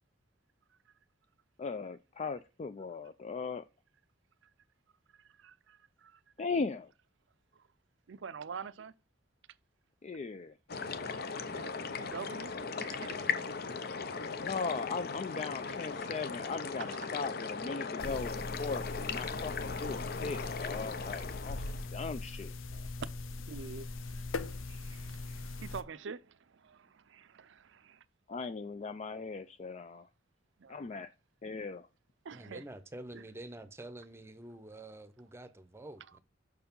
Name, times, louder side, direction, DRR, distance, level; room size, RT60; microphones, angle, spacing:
voice 1, 1.6-3.6 6.4-6.9 10.0-10.6 14.4-21.6 21.9-22.5 28.3-30.1 30.7-31.1 31.4-31.9, left 4 dB, 35° left, 0.3 m, -38 dB
voice 2, 5.4-6.2 8.1-8.9 11.5-11.7 12.0-12.5 12.8-13.2 13.7-13.8 16.8-17.1 22.7-22.9 23.5-28.0 30.6-30.8 32.2-32.6 33.1-33.2, right 5 dB, 65° right, 0.5 m, -46 dB
sound 1, 10.7-21.9, left 5 dB, 50° left, 0.7 m, -38 dB
sound 2, 18.0-25.8, left 3 dB, 90° left, 0.6 m, -41 dB
voice 3, 32.3-36.2, right 1 dB, 15° right, 0.7 m, -48 dB
6.3 x 4.7 x 5.3 m
head